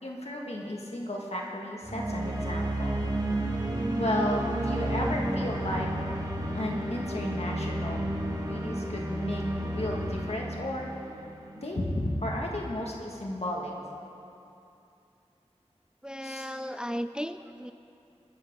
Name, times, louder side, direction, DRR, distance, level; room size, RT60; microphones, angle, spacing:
voice 1, 0.0-3.0 4.0-5.9 6.5-8.0 8.5-10.9 11.6-13.7 16.2-16.5, left 1 dB, 65° left, -1 dB, 2.0 m, -33 dB
sound 1, 1.8-11.9, right 1 dB, 35° right, 1.9 m, -31 dB
voice 2, 16.0-17.7, equal, 5° right, 10 dB, 0.4 m, -35 dB
22.0 x 10.5 x 3.9 m, 2.7 s
wide cardioid pair, 50°, 12 cm